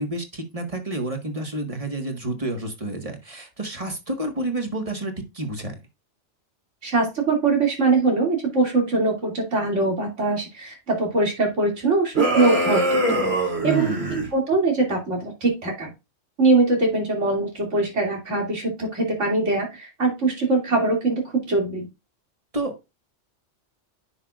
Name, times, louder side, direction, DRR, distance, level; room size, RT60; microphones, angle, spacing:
voice 1, 0.0-5.8 13.6-14.3 22.5-22.8, right 2 dB, 30° right, 4 dB, 1.7 m, -29 dB
voice 2, 6.8-13.2 13.6-13.9 14.3-15.9 16.4-21.9, right 3 dB, 85° right, 1 dB, 3.1 m, -22 dB
sound 1, 12.1-14.3, right 1 dB, 60° right, 3.0 m, -23 dB
9.6 x 5.9 x 2.5 m, 0.25 s
omnidirectional pair, 1.2 m